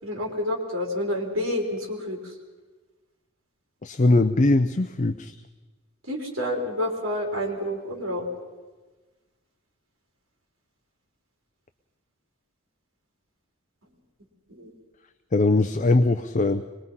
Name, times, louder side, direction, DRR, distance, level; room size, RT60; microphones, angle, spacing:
voice 1, 0.0-2.3 6.1-8.3 14.5-14.7, left 1 dB, 75° right, 1 dB, 4.0 m, -29 dB
voice 2, 3.8-5.3 15.3-16.6, left 2 dB, 35° left, 9 dB, 0.6 m, -21 dB
24.5 x 21.5 x 5.6 m, 1.3 s
head